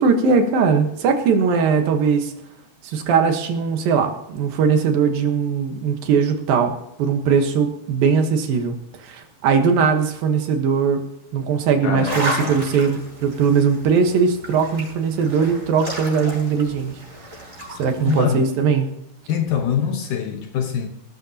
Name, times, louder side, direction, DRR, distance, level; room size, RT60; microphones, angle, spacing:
voice 1, 0.0-2.3 2.8-8.7 9.0-11.0 11.3-17.0 17.8-18.9, right 6 dB, 70° right, 2.9 m, -20 dB
voice 2, 11.8-12.6 18.1-18.5 19.3-20.9, left 8 dB, 70° left, 2.2 m, -24 dB
sound 1, 12.0-18.2, right 1 dB, 20° right, 6.2 m, -33 dB
19.0 x 13.0 x 2.9 m
omnidirectional pair, 4.6 m